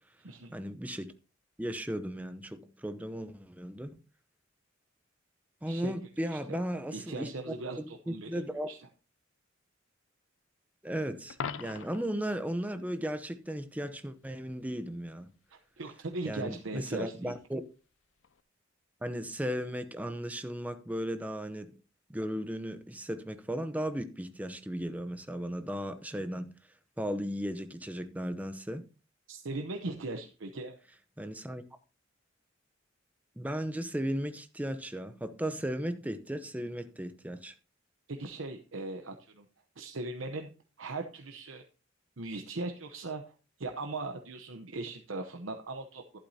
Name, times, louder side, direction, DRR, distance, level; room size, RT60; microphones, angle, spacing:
voice 1, 0.5-1.1 1.6-4.0 5.6-8.7 10.8-15.3 16.2-17.6 19.0-21.7 22.1-26.5 27.0-28.9 31.2-31.6 33.4-37.5, equal, 10° right, 0.7 m, -36 dB
voice 2, 6.2-6.6 6.9-8.8 15.5-17.3 29.3-30.8 38.1-39.5 39.8-40.5 40.8-41.6 42.2-43.3 43.6-46.2, right 2 dB, 80° right, 0.9 m, -39 dB
Coin (dropping), 11.3-12.2 18.2-18.4, left 6 dB, 75° left, 0.5 m, -39 dB
11.5 x 11.5 x 2.8 m
head